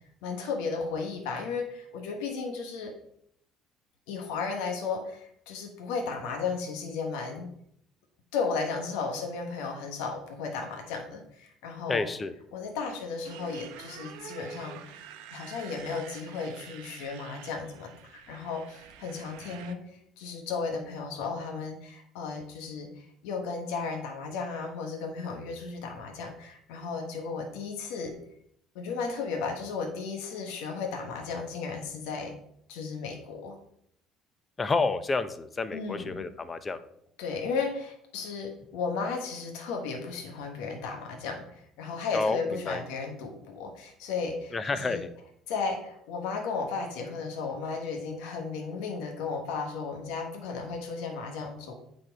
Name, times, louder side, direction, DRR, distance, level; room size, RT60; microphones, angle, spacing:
voice 1, 0.2-2.9 4.1-7.5 8.3-12.1 12.5-15.0 15.3-28.1 28.7-32.3 32.7-33.6 35.7-36.2 37.2-45.0 45.5-51.7, left 4 dB, 85° left, 3 dB, 1.3 m, -34 dB
voice 2, 11.9-12.3 34.6-36.8 42.1-42.8 44.5-45.1, left 3 dB, 25° left, 12 dB, 0.7 m, -29 dB
Motorcycle, 13.2-19.7, right 10 dB, 90° right, 0.7 m, -47 dB
8.8 x 4.3 x 4.6 m, 0.71 s
cardioid pair, 105°, 0 cm